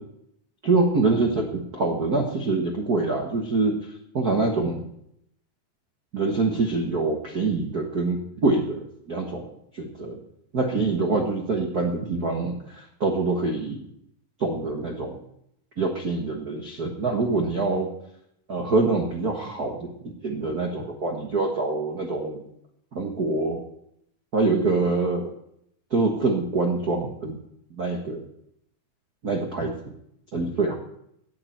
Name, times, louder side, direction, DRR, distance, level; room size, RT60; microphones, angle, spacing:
voice 1, 0.6-4.9 6.1-9.5 9.7-10.2 10.5-13.8 14.4-15.2 15.8-17.9 18.5-19.9 20.2-22.5 22.9-23.6 24.3-25.3 25.9-27.4 27.7-28.2 29.2-29.7 30.3-30.7, right 3 dB, 80° right, 1 dB, 0.8 m, -25 dB
17.5 x 9.9 x 4.5 m, 0.74 s
omnidirectional pair, 4.2 m